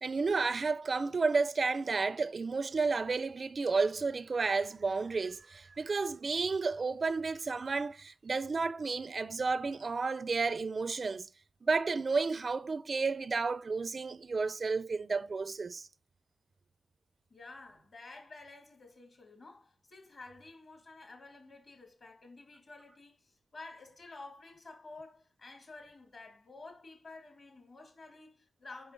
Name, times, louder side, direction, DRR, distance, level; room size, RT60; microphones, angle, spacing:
voice 1, 0.0-11.3 11.6-15.9, right 4 dB, 45° right, 0.4 m, -32 dB
voice 2, 17.3-28.9, left 3 dB, 50° left, 2.2 m, -51 dB
5.4 x 5.4 x 5.0 m
cardioid pair, 85°, 0 cm